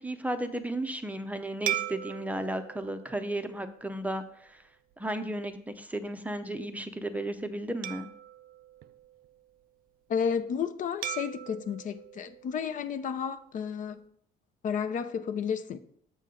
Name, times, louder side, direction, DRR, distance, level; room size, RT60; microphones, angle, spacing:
voice 1, 0.0-4.6 5.0-8.1, right 1 dB, 10° right, 0.5 m, -34 dB
sound 1, 1.7-4.3 4.9-5.1 7.8-9.6 11.0-13.3, right 12 dB, 60° right, 0.4 m, -39 dB
voice 2, 10.1-14.0 14.6-15.8, left 7 dB, 50° left, 0.5 m, -32 dB
7.5 x 5.5 x 3.7 m
cardioid pair, 110°, 17 cm